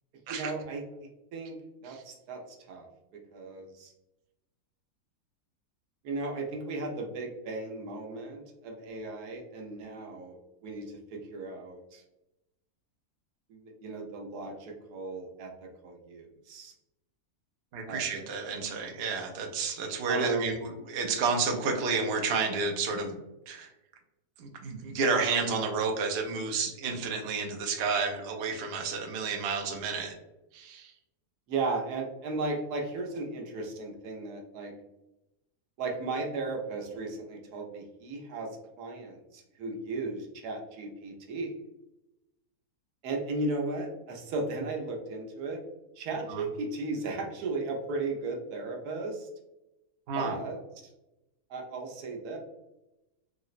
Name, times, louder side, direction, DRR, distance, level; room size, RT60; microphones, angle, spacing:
voice 1, 0.3-1.6 1.8-3.9 6.0-10.4 10.6-12.0 13.5-16.7 17.9-18.3 20.1-20.5 31.5-34.7 35.8-41.5 43.0-45.6 46.0-49.3 50.1-50.6 51.5-52.4, right 3 dB, 90° right, 1 dB, 1.2 m, -36 dB
voice 2, 17.7-23.2 23.5-23.7 24.4-30.1 30.5-30.9 46.3-46.4 50.1-50.4, right 4 dB, 65° right, 2 dB, 0.6 m, -31 dB
3.7 x 2.0 x 2.4 m, 0.95 s
omnidirectional pair, 1.6 m